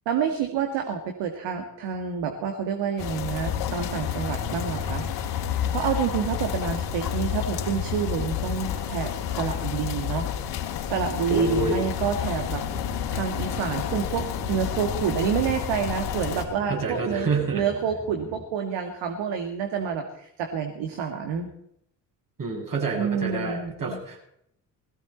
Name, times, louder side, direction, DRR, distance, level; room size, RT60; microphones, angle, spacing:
voice 1, 0.1-5.1 5.7-10.3 10.7-17.3 17.5-21.5 22.9-24.0, right 7 dB, 60° right, 5 dB, 2.0 m, -28 dB
sound 1, 3.0-16.4, left 9 dB, 60° left, 3.4 m, -30 dB
voice 2, 11.3-11.8 16.7-17.6 22.4-24.2, right 3 dB, 40° right, -1 dB, 7.4 m, -27 dB
sound 2, 12.0-18.4, equal, 5° right, 2.8 m, -43 dB
20.5 x 16.0 x 4.3 m, 0.75 s
figure-of-eight pair, 45°, 50 cm